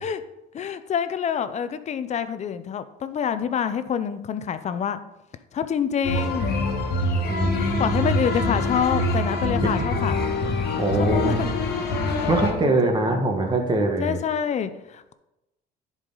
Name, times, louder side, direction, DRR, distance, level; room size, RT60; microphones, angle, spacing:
voice 1, 0.5-5.0 5.5-6.6 7.8-10.2 11.0-11.5 12.2-12.8 13.1-13.2 14.0-15.1, left 8 dB, 45° left, 12 dB, 0.6 m, -27 dB
sound 1, 6.0-12.5, left 2 dB, 70° left, 1.4 m, -25 dB
voice 2, 7.3-8.1 9.6-9.7 10.8-11.6 12.3-14.2, right 2 dB, 30° right, 3 dB, 1.5 m, -23 dB
10.5 x 4.8 x 3.9 m, 0.95 s
cardioid pair, 110°, 17 cm